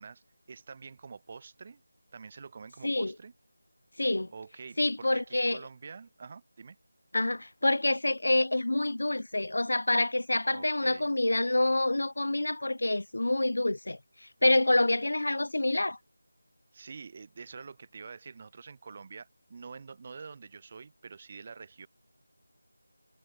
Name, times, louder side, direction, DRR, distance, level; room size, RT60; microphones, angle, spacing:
voice 1, 0.0-1.8 2.1-3.3 4.3-6.8 10.5-11.1 16.7-21.9, right 5 dB, 30° right, 2.3 m, -47 dB
voice 2, 4.0-4.3 4.8-5.6 7.1-14.0 14.4-16.0, left 2 dB, 65° left, 0.8 m, -27 dB
figure-of-eight pair, 165°, 0 cm